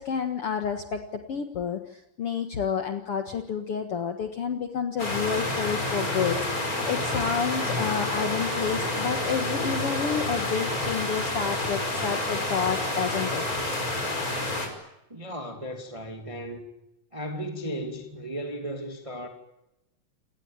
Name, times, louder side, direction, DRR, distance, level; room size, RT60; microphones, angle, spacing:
voice 1, 0.0-13.4, left 6 dB, 50° left, 2.2 m, -30 dB
sound 1, 5.0-14.7, left 2 dB, 25° left, 5.5 m, -29 dB
voice 2, 15.1-16.7 17.1-19.3, equal, 10° right, 2.4 m, -35 dB
28.5 x 19.5 x 9.0 m
omnidirectional pair, 3.7 m